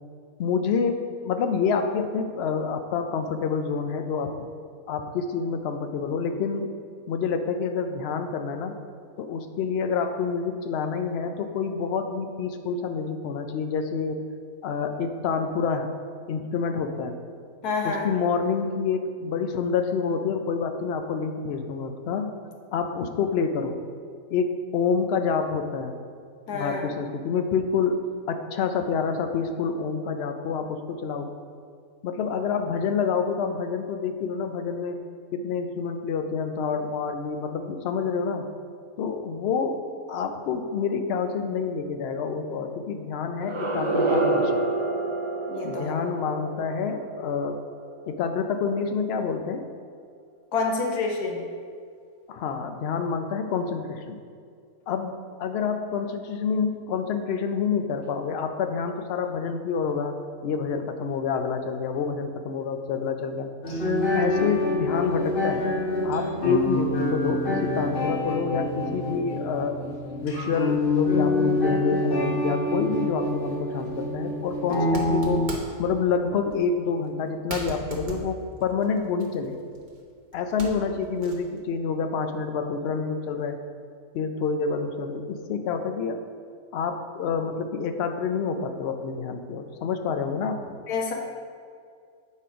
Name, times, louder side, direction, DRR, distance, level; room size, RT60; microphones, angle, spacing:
voice 1, 0.4-4.3 4.9-6.7 7.1-8.8 9.2-14.2 14.6-15.9 16.3-17.2 17.8-22.4 22.7-23.8 24.3-25.9 26.5-28.0 28.3-31.3 32.0-35.0 35.3-38.4 39.0-39.8 40.1-44.6 45.6-47.6 48.1-49.6 52.3-54.2 54.9-60.1 60.4-63.5 64.1-65.6 66.0-69.8 70.2-75.4 75.8-79.6 80.3-83.6 84.1-86.2 86.7-90.7, left 5 dB, 70° left, 6 dB, 0.6 m, -28 dB
voice 2, 17.6-18.1 26.5-26.9 45.5-45.9 50.5-51.4 90.9-91.1, left 4 dB, 85° left, 1 dB, 1.4 m, -27 dB
sound 1, 43.4-48.3, right 2 dB, 40° right, 0.4 m, -28 dB
sound 2, 63.6-75.5, left 2 dB, 40° left, 1.1 m, -26 dB
sound 3, 73.8-73.9 74.6-75.9 76.5-76.7 77.1-77.2 77.5-80.0 80.3-81.6, right 3 dB, 75° right, 1.4 m, -38 dB
7.2 x 4.2 x 5.1 m, 2.2 s
omnidirectional pair, 1.6 m